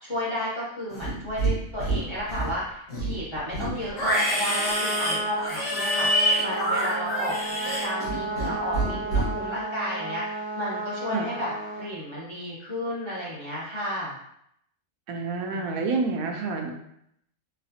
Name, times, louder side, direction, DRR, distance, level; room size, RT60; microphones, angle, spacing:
voice 1, 0.0-7.4 7.6-11.5 11.8-14.2 15.5-15.8, equal, 25° left, -7 dB, 0.7 m, -33 dB
Livestock farm animals working animals, 0.9-1.5 1.8-2.5 2.9-8.5 8.7-9.3, right 1 dB, 65° left, 1.9 m, -26 dB
Trumpet, 4.4-11.9, right 2 dB, 85° left, 1.4 m, -33 dB
voice 2, 15.1-16.7, right 4 dB, 80° right, 3 dB, 1.0 m, -28 dB
4.1 x 2.3 x 2.7 m, 0.74 s
omnidirectional pair, 1.5 m